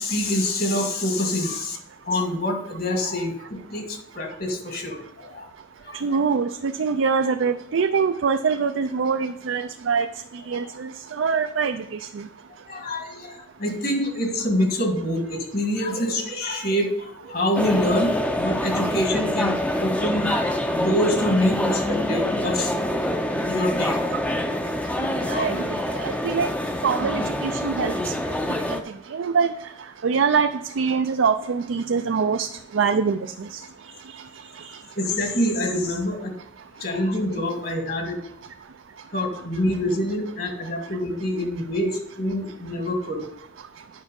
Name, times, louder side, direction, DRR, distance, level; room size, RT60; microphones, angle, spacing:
voice 1, 0.0-1.8 2.0-5.5 5.8-6.2 12.7-22.7 23.4-24.1 24.9-25.5 27.5-27.6 35.0-36.3 36.8-38.2 39.1-43.2, left 1 dB, 50° left, 3 dB, 1.9 m, -26 dB
voice 2, 6.0-10.1 10.5-12.2 25.0-26.5 26.8-28.3 28.7-28.8 29.1-29.5 30.0-30.5 30.8-32.5 32.7-33.6 34.6-34.8, right 5 dB, 80° right, 8 dB, 0.4 m, -24 dB
sound 1, 17.5-28.8, left 1 dB, 5° left, 0.5 m, -26 dB
9.4 x 6.0 x 5.3 m, 0.77 s
head